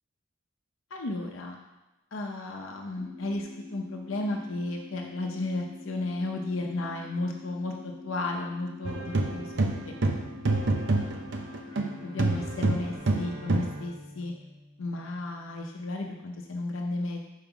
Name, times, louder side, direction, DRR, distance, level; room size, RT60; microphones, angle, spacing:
voice 1, 0.9-1.6 2.1-9.9 10.9-11.0 12.0-14.3 14.8-17.2, left 2 dB, 70° left, 1 dB, 0.7 m, -34 dB
sound 1, 3.0-13.0, left 3 dB, ahead, 1.2 m, -46 dB
sound 2, 8.8-11.9 12.2-13.8, right 2 dB, 55° right, 0.7 m, -27 dB
Bowed string instrument, 11.6-15.8, equal, 30° right, 2.2 m, -47 dB
5.5 x 4.8 x 5.8 m, 1.1 s
head